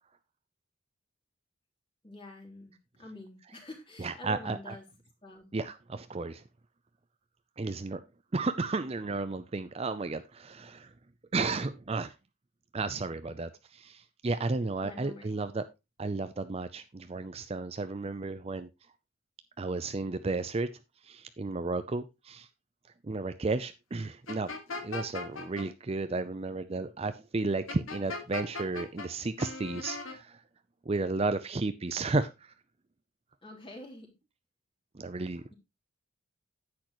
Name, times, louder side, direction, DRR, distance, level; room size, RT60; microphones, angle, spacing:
voice 1, 2.0-4.8 5.2-5.5 14.8-15.4 33.4-34.1, left 1 dB, 25° left, 3.2 m, -47 dB
voice 2, 4.0-4.8 5.5-6.4 7.6-8.0 8.3-10.9 11.3-12.1 12.7-15.7 16.0-18.7 19.6-20.7 21.0-22.5 23.0-24.6 24.8-30.4 30.9-32.5 34.9-35.5, right 3 dB, 30° right, 0.5 m, -33 dB
sound 1, 24.3-25.7 27.7-29.1 29.4-30.2, left 3 dB, 75° left, 1.7 m, -38 dB
10.0 x 8.6 x 3.0 m
head